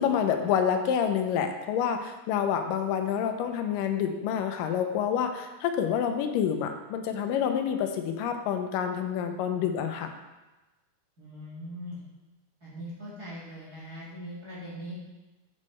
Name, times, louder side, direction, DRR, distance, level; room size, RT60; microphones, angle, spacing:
voice 1, 0.0-10.1, left 8 dB, 85° left, 6 dB, 2.3 m, -28 dB
voice 2, 11.2-12.0 12.6-14.9, equal, 30° right, -8 dB, 2.2 m, -41 dB
8.1 x 6.3 x 4.3 m, 1.1 s
omnidirectional pair, 3.9 m